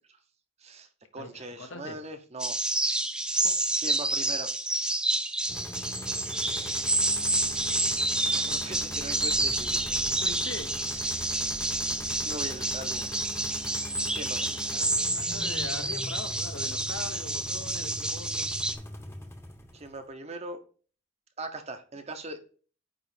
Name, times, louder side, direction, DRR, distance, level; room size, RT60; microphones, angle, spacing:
voice 1, 0.6-2.6 2.8-3.0 3.8-4.5 4.8-5.3 6.4-6.9 7.5-10.0 10.7-11.3 12.3-13.2 14.1-14.7 19.7-20.6 21.4-22.4, right 2 dB, 35° right, 8 dB, 0.8 m, -41 dB
voice 2, 1.2-2.0 3.4-3.6 10.2-10.7 14.7-18.5, left 3 dB, 70° left, 7 dB, 1.0 m, -41 dB
sound 1, 2.4-18.8, right 2 dB, 5° right, 0.3 m, -29 dB
sound 2, 5.5-20.0, left 1 dB, 15° left, 0.9 m, -41 dB
8.8 x 3.1 x 4.9 m, 0.41 s
head